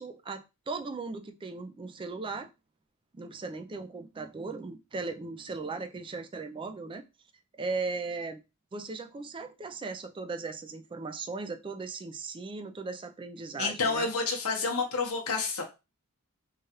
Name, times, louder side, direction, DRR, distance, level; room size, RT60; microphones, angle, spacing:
voice 1, 0.0-2.5 3.1-7.0 7.6-8.4 8.7-14.1, right 3 dB, 25° right, 0.3 m, -37 dB
voice 2, 13.6-15.6, left 4 dB, 70° left, 0.8 m, -29 dB
3.1 x 2.4 x 2.8 m
head